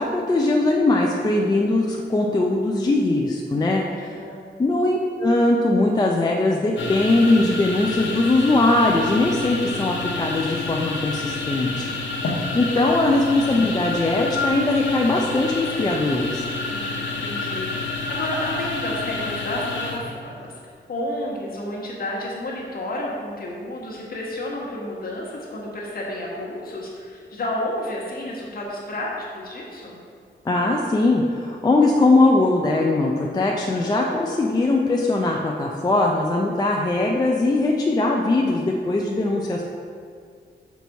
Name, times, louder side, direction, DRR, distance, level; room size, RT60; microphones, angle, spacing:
voice 1, 0.0-3.8 4.6-11.9 12.5-16.4 30.4-39.7, left 2 dB, 20° left, -1 dB, 0.4 m, -20 dB
voice 2, 4.0-4.5 16.7-30.0, left 1 dB, 50° left, -4 dB, 1.3 m, -31 dB
sound 1, 6.8-20.0, left 3 dB, 85° left, 0.8 m, -29 dB
6.0 x 4.0 x 4.6 m, 2.1 s
wide cardioid pair, 165°, 19 cm